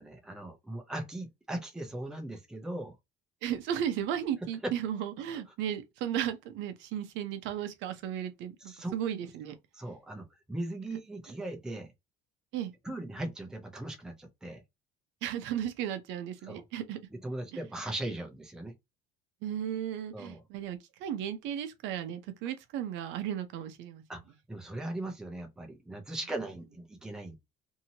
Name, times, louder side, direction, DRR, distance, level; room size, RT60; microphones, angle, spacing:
voice 1, 0.0-3.0 5.5-5.6 8.6-9.0 9.7-11.9 12.8-14.6 16.4-16.6 17.1-18.7 20.1-20.4 24.1-24.2 24.5-27.4, right 1 dB, 5° right, 0.5 m, -39 dB
voice 2, 3.4-9.6 12.5-12.7 15.2-17.0 19.4-24.0, right 10 dB, 65° right, 0.6 m, -35 dB
2.8 x 2.7 x 2.7 m
cardioid pair, 180°, 21 cm